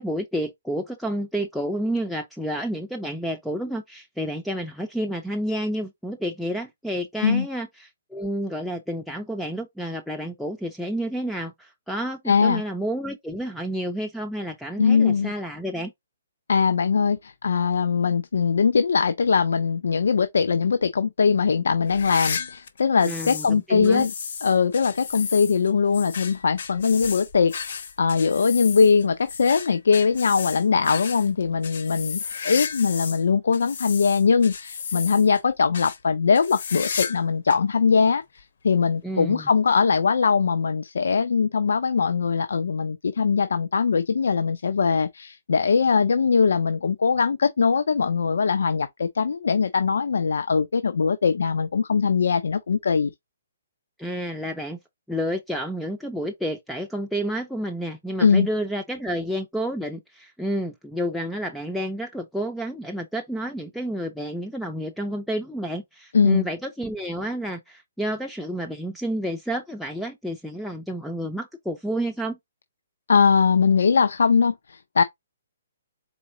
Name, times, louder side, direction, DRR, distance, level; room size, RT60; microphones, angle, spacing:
voice 1, 0.0-15.9 23.0-24.1 39.0-39.5 54.0-54.8 55.1-72.4, equal, ahead, 0.4 m, -30 dB
voice 2, 12.3-12.6 14.8-15.3 16.5-24.1 24.4-53.1 58.2-58.5 66.1-66.5 73.1-75.0, left 5 dB, 85° left, 0.5 m, -21 dB
sound 1, 21.9-23.5 23.8-33.2 33.5-35.4 35.7-36.0 36.3-37.2 37.5-37.6 38.4-38.5 39.7-39.8, left 6 dB, 60° left, 0.9 m, -33 dB
4.3 x 3.7 x 2.6 m
hypercardioid pair, 170°, 0 cm